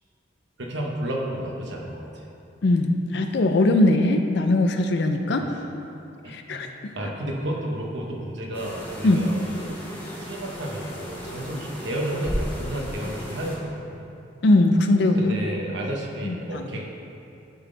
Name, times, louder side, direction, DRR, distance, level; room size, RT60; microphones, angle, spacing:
voice 1, 0.6-2.3 5.4-5.6 6.2-6.6 6.9-9.8 10.2-14.0 15.2-16.8, right 1 dB, 65° right, -1 dB, 1.0 m, -32 dB
voice 2, 2.6-5.5 6.3-6.9 9.0-9.2 14.4-15.4 16.2-16.7, left 2 dB, 60° left, 5 dB, 0.5 m, -20 dB
sound 1, 8.5-13.6, equal, 10° left, 1.2 m, -35 dB
11.0 x 3.9 x 3.8 m, 2.7 s
head